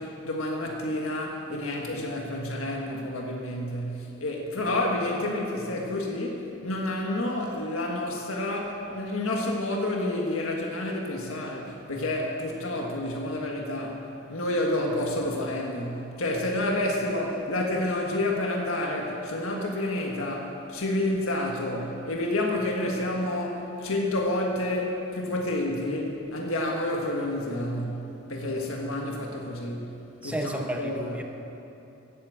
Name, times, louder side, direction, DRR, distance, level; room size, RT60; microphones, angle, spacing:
voice 1, 0.0-29.9 30.2-31.2, left 1 dB, 90° left, 0 dB, 1.6 m, -29 dB
voice 2, 30.2-31.2, right 1 dB, 5° right, 3 dB, 0.9 m, -32 dB
14.5 x 8.7 x 7.7 m, 3.0 s
head